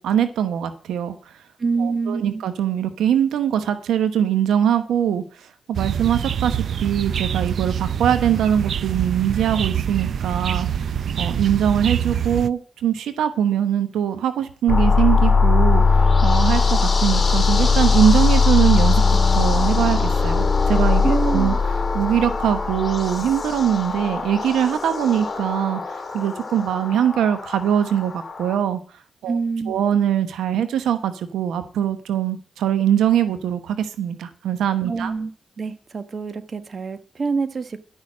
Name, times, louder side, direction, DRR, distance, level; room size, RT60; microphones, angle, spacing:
voice 1, 0.0-1.3 1.8-19.0 19.3-21.5 21.9-28.8 29.2-29.4 29.7-35.1, right 9 dB, 90° right, 10 dB, 1.0 m, -22 dB
voice 2, 1.6-2.4 21.0-21.6 29.3-29.8 34.9-35.3 35.6-37.8, right 4 dB, 45° right, 10 dB, 1.3 m, -26 dB
sound 1, 5.7-12.5, right 8 dB, 70° right, 0.4 m, -25 dB
sound 2, 14.7-28.6, left 4 dB, 35° left, 2.4 m, -20 dB
11.5 x 6.5 x 7.3 m, 0.42 s
cardioid pair, 75°, 0 cm